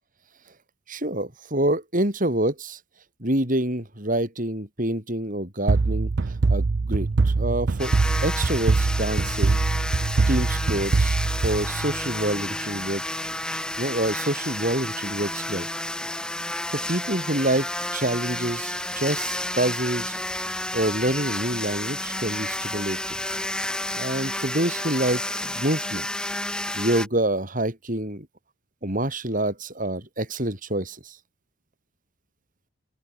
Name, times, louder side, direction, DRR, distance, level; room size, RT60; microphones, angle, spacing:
voice 1, 0.9-2.8 3.2-7.9 8.2-9.6 10.3-11.2 11.4-13.0 13.5-15.7 16.7-20.2 20.7-23.2 23.9-26.1 26.7-28.3 28.8-31.2, right 1 dB, 40° right, 6.1 m, -27 dB
sound 1, 5.7-12.3, right 3 dB, 55° right, 0.5 m, -23 dB
sound 2, 7.8-27.1, left 1 dB, 5° left, 1.3 m, -31 dB
open air
head